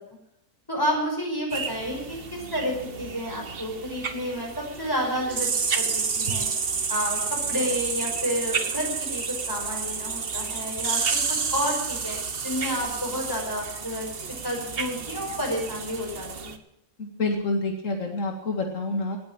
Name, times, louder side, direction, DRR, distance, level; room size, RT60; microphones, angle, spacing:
voice 1, 0.7-6.5 6.9-14.1 14.4-16.6, equal, 15° left, -1 dB, 5.4 m, -30 dB
sound 1, 1.5-16.6, right 5 dB, 50° right, 1.3 m, -30 dB
voice 2, 17.0-19.2, left 2 dB, 80° left, 3 dB, 2.4 m, -28 dB
18.0 x 8.6 x 8.9 m, 0.78 s
omnidirectional pair, 1.3 m